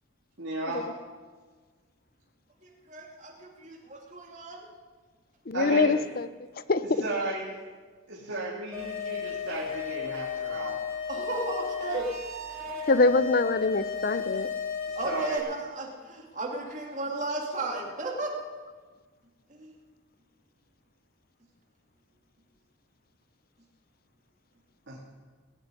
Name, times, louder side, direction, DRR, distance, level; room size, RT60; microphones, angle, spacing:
voice 1, 0.4-0.9 5.5-6.0 6.8-7.6 8.1-10.8 14.9-15.4 24.9-25.0, right 2 dB, 65° right, -5 dB, 2.6 m, -34 dB
voice 2, 2.6-4.7 11.1-12.1 15.0-18.3 19.5-19.7, right 2 dB, 35° right, 0 dB, 2.4 m, -34 dB
voice 3, 5.5-6.3 6.7-6.8 12.9-14.5, left 3 dB, 45° left, 14 dB, 0.6 m, -24 dB
sound 1, 8.7-15.4, left 6 dB, 15° right, 3.7 m, -34 dB
19.5 x 6.8 x 9.8 m, 1.5 s
head